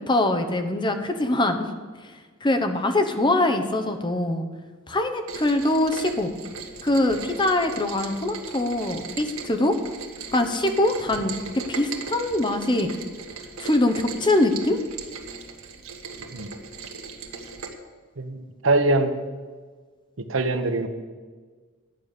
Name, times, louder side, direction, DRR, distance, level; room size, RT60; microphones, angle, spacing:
voice 1, 0.1-1.7 2.4-4.5 4.9-6.3 6.8-9.8 10.3-12.9 13.6-14.8, left 1 dB, 20° left, 7 dB, 0.9 m, -23 dB
Rain, 5.3-17.7, right 4 dB, 85° right, 1.5 m, -38 dB
voice 2, 18.2-19.1 20.3-20.9, right 2 dB, 65° right, 8 dB, 1.1 m, -23 dB
11.5 x 9.0 x 6.7 m, 1.4 s
head